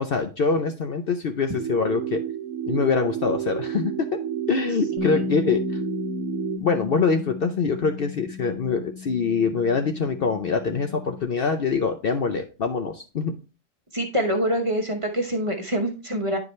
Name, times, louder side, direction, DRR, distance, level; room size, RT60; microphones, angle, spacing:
voice 1, 0.0-2.2 2.7-4.1 4.5-5.6 6.6-13.3, left 5 dB, 55° left, 6 dB, 0.7 m, -24 dB
sound 1, 1.6-6.6, right 10 dB, 75° right, 0.9 m, -30 dB
Bass guitar, 5.0-11.2, left 8 dB, 35° left, 1.2 m, -35 dB
voice 2, 13.9-16.4, equal, 25° right, 3 dB, 0.9 m, -25 dB
9.6 x 4.9 x 3.2 m, 0.33 s
omnidirectional pair, 1.4 m